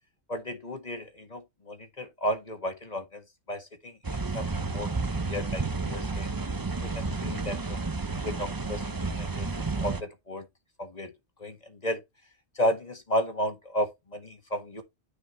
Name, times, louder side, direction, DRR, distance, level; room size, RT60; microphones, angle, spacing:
voice 1, 0.3-4.0 4.3-6.3 6.8-7.8 8.2-10.5 10.8-11.1 11.4-12.0 12.6-14.8, equal, 30° left, 1.8 m, -33 dB
sound 1, 4.0-10.0, right 3 dB, 25° right, 0.6 m, -31 dB
10.0 x 5.6 x 3.2 m
omnidirectional pair, 1.3 m